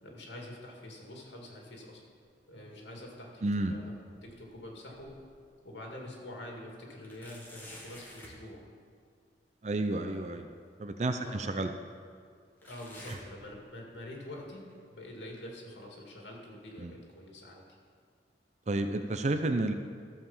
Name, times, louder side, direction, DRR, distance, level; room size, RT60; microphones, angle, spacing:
voice 1, 0.0-2.0 2.5-3.4 3.7-3.9 4.2-5.1 5.6-8.7 9.9-10.3 11.2-11.6 12.6-14.6 14.9-17.6, left 1 dB, 85° left, -1 dB, 2.4 m, -46 dB
sound 1, 2.5-3.2 3.5-5.4 5.9-6.0 7.0-8.4 10.1-10.2 11.2-11.3 12.6-14.0 14.3-14.7 15.4-15.5 16.4-16.5, left 1 dB, 10° left, 1.5 m, -52 dB
voice 2, 3.4-3.8 9.6-10.5 10.8-11.7 13.1-13.2 16.8-16.9 18.7-19.7, right 2 dB, 40° right, 7 dB, 0.5 m, -31 dB
14.0 x 4.9 x 7.2 m, 2.2 s
head